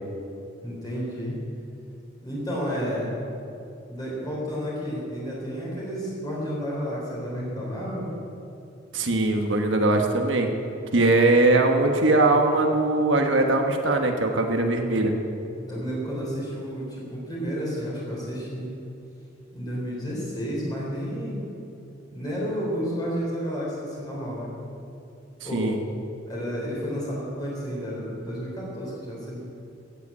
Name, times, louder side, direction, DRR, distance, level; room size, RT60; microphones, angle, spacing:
voice 1, 0.6-1.4 2.2-3.1 3.9-8.1 15.7-18.7 19.5-21.4 22.1-24.5 25.4-25.7 26.3-29.4, equal, 20° left, -6 dB, 3.8 m, -31 dB
voice 2, 8.9-10.5 10.9-15.1 25.4-25.8, right 2 dB, 65° right, 3 dB, 1.3 m, -21 dB
15.0 x 8.3 x 8.5 m, 2.7 s
head